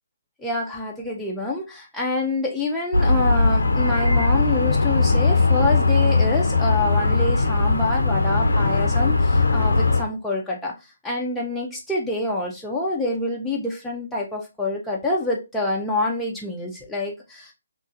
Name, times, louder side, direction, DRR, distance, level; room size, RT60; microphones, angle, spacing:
voice 1, 0.4-17.5, left 2 dB, 5° left, -4 dB, 0.4 m, -27 dB
sound 1, 2.9-10.0, left 3 dB, 75° left, 0.4 m, -19 dB
2.9 x 2.3 x 2.5 m, 0.25 s
figure-of-eight pair, 140°, 0 cm